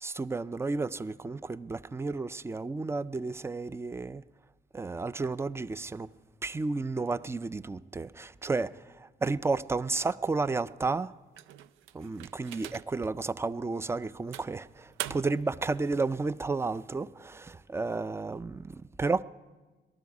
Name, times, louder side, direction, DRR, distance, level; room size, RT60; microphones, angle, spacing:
voice 1, 0.0-4.2 4.7-6.1 6.4-8.7 9.0-11.1 11.9-19.2, right 3 dB, 15° right, 0.3 m, -32 dB
sound 1, 11.3-13.1 13.6-13.7 14.3-15.5, right 12 dB, 85° right, 0.4 m, -42 dB
19.0 x 12.5 x 4.8 m
cardioid pair, 90°, 20 cm